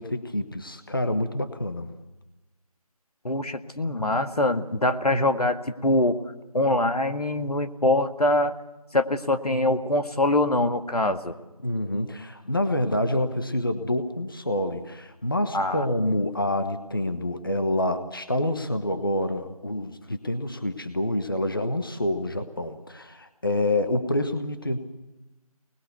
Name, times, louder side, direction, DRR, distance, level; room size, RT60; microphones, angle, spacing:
voice 1, 0.0-1.9 11.6-24.8, left 1 dB, 35° left, 8 dB, 1.2 m, -27 dB
voice 2, 3.2-6.2 6.5-8.5 8.9-11.4 15.5-15.9, left 1 dB, 80° left, 7 dB, 1.9 m, -24 dB
25.5 x 20.5 x 6.8 m, 1.0 s
figure-of-eight pair, 175°, 19 cm